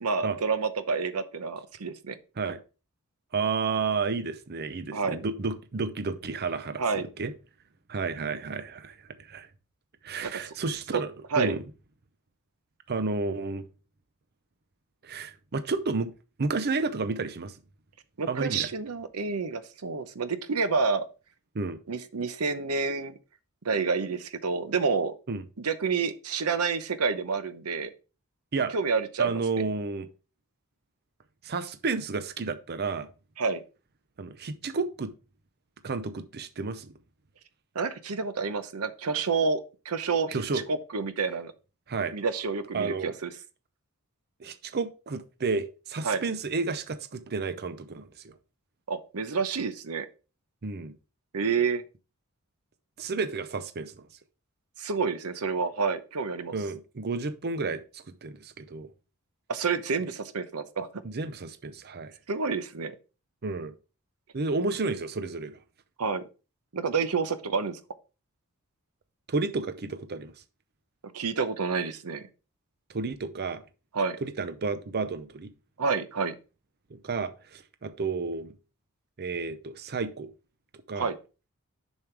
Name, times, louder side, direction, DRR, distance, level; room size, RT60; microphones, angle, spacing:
voice 1, 0.0-2.2 4.9-5.2 6.8-7.1 10.2-10.5 10.9-11.0 11.3-11.5 18.2-21.0 21.9-23.1 23.6-25.1 25.6-27.9 28.7-29.6 33.4-33.6 37.7-41.5 42.1-43.3 46.0-46.2 48.9-50.1 51.3-51.8 54.8-56.5 59.5-60.9 62.3-62.9 66.0-66.2 66.7-67.8 71.1-72.3 73.9-74.2 75.8-76.3 80.9-81.2, right 5 dB, 90° right, 0.8 m, -29 dB
voice 2, 3.3-7.3 7.9-9.5 10.0-11.1 11.4-11.6 12.9-13.6 15.0-16.1 16.4-17.6 18.3-18.7 21.5-21.8 25.3-25.4 28.5-28.7 29.2-30.1 31.4-33.1 34.2-35.1 35.8-36.9 40.3-40.6 41.9-42.2 42.7-43.1 44.4-48.3 50.6-50.9 53.0-54.1 56.5-58.9 61.0-62.1 63.4-63.7 64.3-65.6 69.3-70.3 72.9-73.6 74.2-75.5 76.9-78.5 79.2-80.3 80.9-81.1, right 4 dB, 45° right, 0.6 m, -31 dB
7.0 x 6.3 x 3.3 m
head